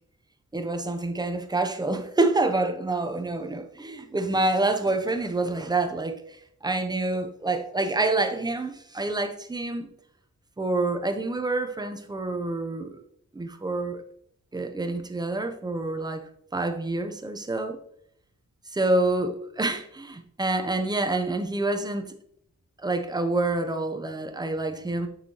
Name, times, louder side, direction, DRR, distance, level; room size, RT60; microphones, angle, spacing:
voice 1, 0.5-6.4 6.6-9.9 10.6-13.0 13.3-14.0 14.5-16.2 16.5-17.8 18.7-22.1 22.8-25.1, right 2 dB, 15° right, 0.6 m, -27 dB
6.6 x 6.4 x 2.9 m
wide cardioid pair, 160°, 31 cm